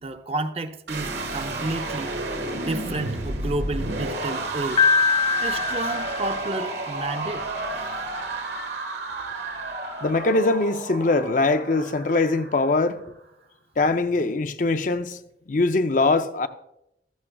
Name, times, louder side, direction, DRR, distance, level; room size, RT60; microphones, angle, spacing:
voice 1, 0.0-2.1 2.5-4.9 5.4-7.5, right 2 dB, 35° right, 0.5 m, -31 dB
sound 1, 0.9-12.9, right 2 dB, 75° right, 1.6 m, -31 dB
Piano, 4.8-6.9, left 5 dB, 30° left, 0.9 m, -23 dB
voice 2, 10.0-13.0 13.8-15.2 15.5-16.5, left 3 dB, 45° left, 0.5 m, -22 dB
14.5 x 13.0 x 2.3 m
head